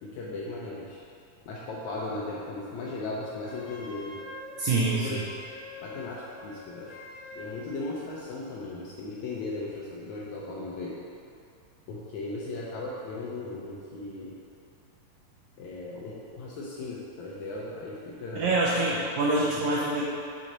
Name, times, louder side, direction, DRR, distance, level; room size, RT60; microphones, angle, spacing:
voice 1, 0.0-1.0 1.5-4.2 4.9-5.3 5.8-6.9 7.3-11.0 11.9-14.3 15.6-18.5 18.8-19.0 19.5-19.7, left 2 dB, 85° left, -5 dB, 1.7 m, -37 dB
Wind instrument woodwind instrument, 3.4-7.6, left 2 dB, 70° left, 2.0 m, -45 dB
voice 2, 4.6-5.2 18.4-20.0, right 2 dB, 80° right, -5 dB, 1.8 m, -25 dB
6.4 x 4.1 x 3.8 m, 2.5 s
omnidirectional pair, 4.0 m